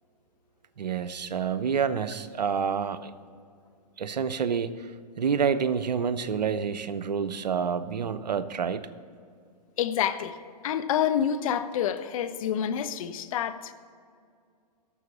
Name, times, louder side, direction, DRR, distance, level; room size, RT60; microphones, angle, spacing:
voice 1, 0.8-3.1 4.0-4.7 5.2-8.9, right 6 dB, 85° right, 13 dB, 0.7 m, -28 dB
voice 2, 9.8-10.4 10.6-13.7, left 9 dB, 55° left, 12 dB, 0.8 m, -28 dB
12.0 x 6.9 x 7.1 m, 2.2 s
hypercardioid pair, 120°, 21 cm